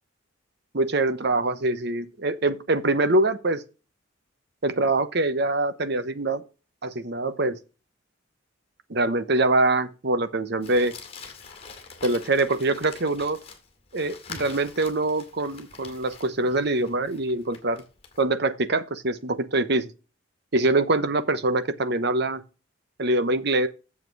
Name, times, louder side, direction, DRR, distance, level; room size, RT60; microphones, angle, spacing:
voice 1, 0.7-3.6 4.6-6.4 6.8-7.6 8.9-11.0 12.0-13.4 13.9-17.8 18.2-19.9 20.5-22.4 23.0-23.7, right 2 dB, 55° right, 0.9 m, -24 dB
Crumpling crinkling, 10.6-18.2, left 5 dB, 30° left, 2.1 m, -45 dB
8.3 x 7.3 x 4.7 m
head